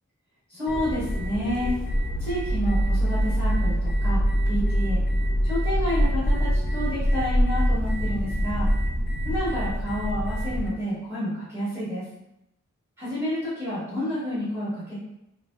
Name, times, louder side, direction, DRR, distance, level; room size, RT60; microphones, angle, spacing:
voice 1, 0.5-1.7 2.2-4.2 4.5-5.0 5.4-8.7 9.2-12.0 13.0-15.0, equal, 10° right, -11 dB, 1.2 m, -29 dB
sound 1, 0.7-10.7, equal, 40° left, 0.5 m, -24 dB
2.9 x 2.5 x 2.2 m, 0.85 s
head